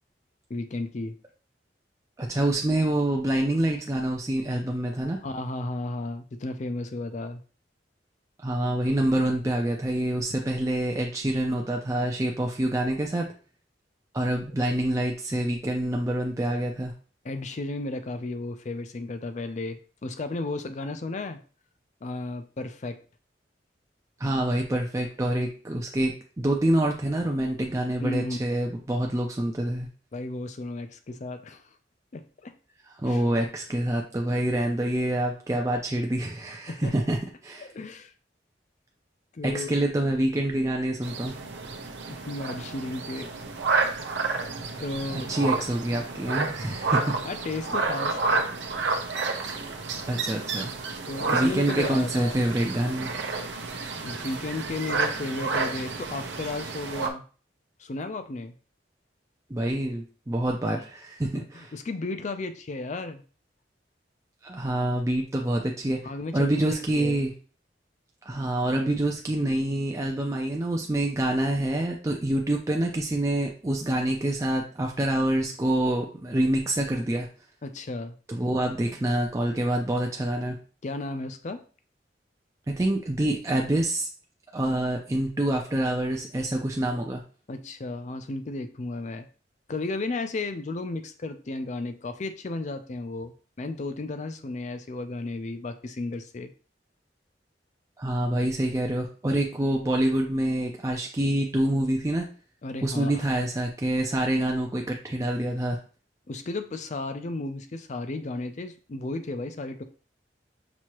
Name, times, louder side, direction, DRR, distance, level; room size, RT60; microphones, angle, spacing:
voice 1, 0.5-1.2 5.2-7.4 17.2-21.4 22.0-23.0 28.0-28.7 30.1-31.6 32.1-32.5 33.0-33.2 36.7-36.9 37.6-38.1 39.3-39.7 42.1-43.3 44.8-45.3 47.2-48.4 48.9-49.0 51.1-52.4 54.0-57.2 57.8-58.5 61.2-63.2 65.9-67.2 77.6-78.1 80.8-81.6 87.5-89.3 89.7-96.5 102.6-103.3 106.3-109.8, left 2 dB, 40° left, 9 dB, 0.5 m, -34 dB
voice 2, 2.2-5.2 8.4-13.3 14.1-16.9 24.2-29.9 33.0-37.2 37.4-37.7 39.4-41.4 45.1-47.2 50.1-50.7 51.3-53.1 59.5-61.7 64.4-66.0 66.3-67.3 68.2-77.3 78.3-80.6 82.7-84.1 84.5-87.2 98.0-102.3 102.8-105.8, right 1 dB, 20° right, 1 dB, 0.4 m, -26 dB
sound 1, 41.0-57.1, right 4 dB, 85° right, 0.7 m, -30 dB
6.0 x 2.7 x 3.0 m, 0.38 s
head